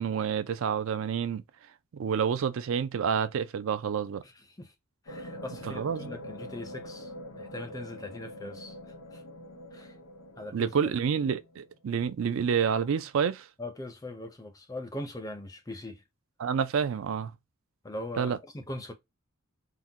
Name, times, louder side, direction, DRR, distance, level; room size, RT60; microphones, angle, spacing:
voice 1, 0.0-1.4 1.9-4.2 5.7-6.2 10.5-13.5 16.4-17.3 18.2-18.4, right 7 dB, 65° right, 0.3 m, -28 dB
voice 2, 4.2-4.7 5.0-7.1 7.4-8.8 9.1-9.2 9.7-10.0 10.4-10.9 13.6-16.0 17.8-18.9, left 1 dB, 15° left, 0.5 m, -41 dB
sound 1, 5.1-11.7, left 1 dB, 90° left, 1.0 m, -44 dB
3.7 x 2.1 x 2.7 m
head